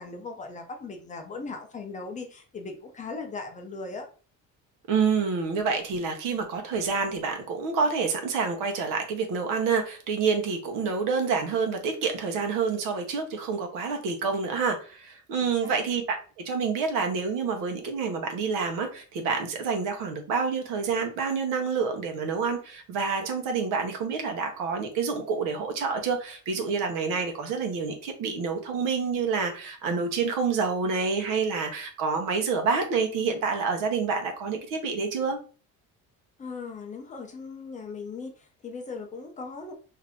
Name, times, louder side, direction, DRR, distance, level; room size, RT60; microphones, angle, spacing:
voice 1, 0.0-4.1 15.4-15.7 36.4-39.7, left 4 dB, 25° left, 4 dB, 0.5 m, -38 dB
voice 2, 4.9-16.2 16.4-35.4, right 5 dB, 90° right, 4 dB, 0.9 m, -28 dB
2.8 x 2.5 x 3.4 m, 0.38 s
cardioid pair, 150°, 31 cm